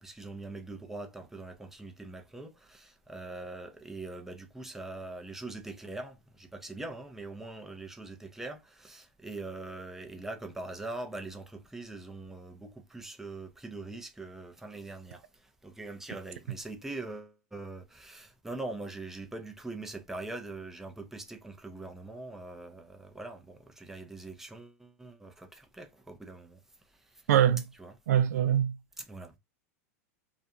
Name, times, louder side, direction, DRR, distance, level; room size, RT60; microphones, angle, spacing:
voice 1, 0.0-26.6 27.1-27.2 27.8-27.9 29.0-29.3, right 2 dB, 5° right, 0.5 m, -42 dB
voice 2, 27.3-27.6 28.1-28.8, right 10 dB, 75° right, 0.3 m, -23 dB
2.5 x 2.2 x 2.6 m
hypercardioid pair, 115°, 9 cm